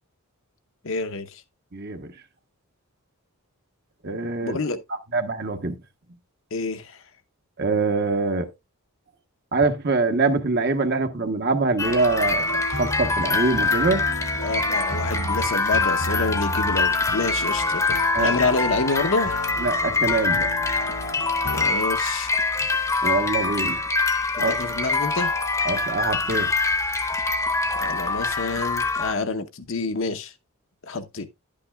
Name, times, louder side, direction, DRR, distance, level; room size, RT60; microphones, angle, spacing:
voice 1, 0.8-1.4 4.4-4.8 6.5-7.0 14.4-19.3 21.5-22.3 24.5-25.3 27.8-30.3 30.8-31.3, left 3 dB, 60° left, 0.8 m, -27 dB
voice 2, 1.7-2.1 4.0-4.6 5.1-5.7 7.6-8.5 9.5-14.0 18.1-18.3 19.6-20.5 23.0-23.8 24.4-24.5 25.7-26.5, right 3 dB, 45° right, 1.0 m, -24 dB
sound 1, 11.8-29.1, left 3 dB, 15° left, 0.8 m, -24 dB
sound 2, 12.2-21.7, equal, 80° left, 1.9 m, -34 dB
11.0 x 8.6 x 2.3 m
head